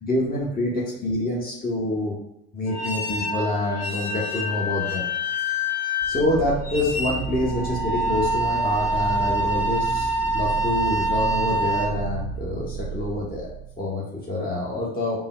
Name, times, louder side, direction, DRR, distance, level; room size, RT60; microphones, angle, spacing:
voice 1, 0.0-2.1 2.5-5.0 6.1-13.5 13.8-15.2, left 1 dB, 25° left, -3 dB, 1.2 m, -26 dB
sound 1, 2.7-11.9, equal, 55° left, 1.3 m, -26 dB
sound 2, 6.0-13.9, right 8 dB, 20° right, 0.6 m, -33 dB
3.7 x 2.3 x 4.4 m, 0.79 s
hypercardioid pair, 60°, 34 cm